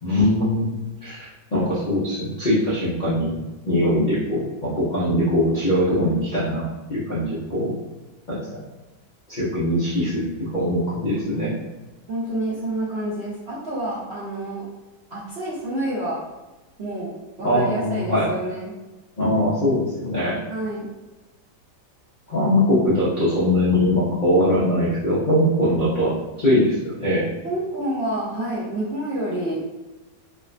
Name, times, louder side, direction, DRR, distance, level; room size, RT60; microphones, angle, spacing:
voice 1, 0.0-3.4 3.7-7.8 8.3-8.5 9.3-11.5 17.4-18.4 19.2-20.4 22.3-27.3, left 1 dB, 80° left, -9 dB, 0.4 m, -22 dB
voice 2, 12.1-14.6 15.1-16.2 16.8-17.1 17.4-18.7 20.5-20.9 27.4-29.6, right 1 dB, 70° right, -9 dB, 0.5 m, -28 dB
3.5 x 2.2 x 2.4 m, 1.1 s
omnidirectional pair, 1.9 m